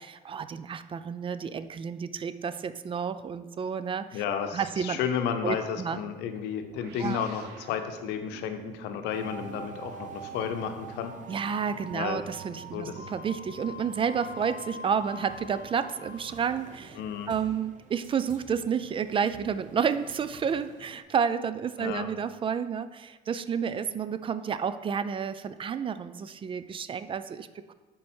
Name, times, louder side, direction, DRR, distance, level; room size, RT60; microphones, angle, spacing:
voice 1, 0.0-4.2 4.5-5.0 5.4-6.0 7.0-7.2 11.3-17.0 17.3-27.7, right 7 dB, 30° right, 13 dB, 0.3 m, -30 dB
voice 2, 4.1-11.1 11.9-12.2 12.7-13.1 17.0-17.3 21.8-22.1, left 8 dB, 90° left, 7 dB, 0.7 m, -32 dB
sound 1, 6.6-15.4, right 7 dB, 75° right, 0.7 m, -51 dB
sound 2, 9.1-21.0, right 1 dB, 50° right, 0.8 m, -45 dB
7.5 x 4.7 x 4.4 m, 1.3 s
cardioid pair, 110°, 17 cm